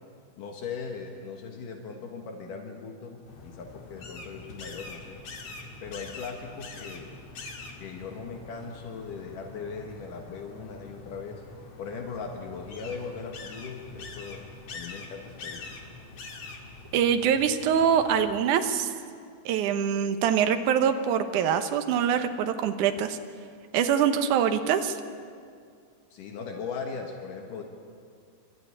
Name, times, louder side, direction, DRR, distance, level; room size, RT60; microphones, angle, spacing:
voice 1, 0.4-5.2 5.8-7.1 7.8-11.4 11.8-14.4 14.7-15.8 26.1-27.6, left 5 dB, 75° left, 2 dB, 3.1 m, -39 dB
sound 1, 3.3-18.4, left 3 dB, 50° left, 2.8 m, -44 dB
voice 2, 16.9-18.9 19.5-23.2 23.7-25.0, right 8 dB, 70° right, 8 dB, 2.5 m, -24 dB
28.0 x 13.0 x 9.7 m, 2.2 s
omnidirectional pair, 3.8 m